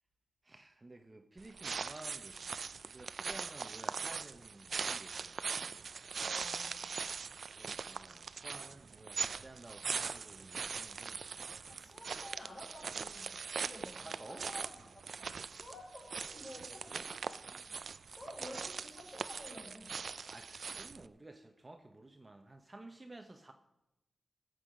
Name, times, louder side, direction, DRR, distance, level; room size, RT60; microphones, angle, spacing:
voice 1, 0.4-5.4 7.5-11.2 13.9-14.5 16.7-17.1 20.3-23.5, right 2 dB, 25° right, 5 dB, 0.9 m, -53 dB
sound 1, 1.4-21.1, right 5 dB, 70° right, 0.4 m, -41 dB
voice 2, 6.2-6.9 11.7-13.3 13.6-17.6 18.1-20.0, left 1 dB, 35° left, -3 dB, 6.0 m, -51 dB
17.5 x 7.8 x 5.1 m, 0.91 s
wide cardioid pair, 85°, 0 cm